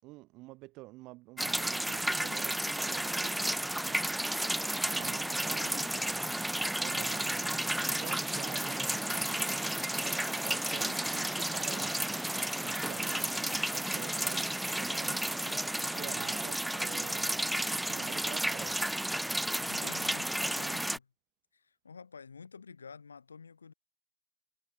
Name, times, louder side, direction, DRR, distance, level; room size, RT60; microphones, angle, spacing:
voice 1, 0.0-4.2 4.8-6.0 6.8-7.6 7.9-9.7 10.0-18.9, right 21 dB, 40° right, 5.2 m, -48 dB
sound 1, 1.4-21.0, right 1 dB, 5° right, 1.6 m, -32 dB
voice 2, 19.7-21.1 21.5-23.7, left 5 dB, 75° left, 4.5 m, -50 dB
figure-of-eight pair, 90°, 0 cm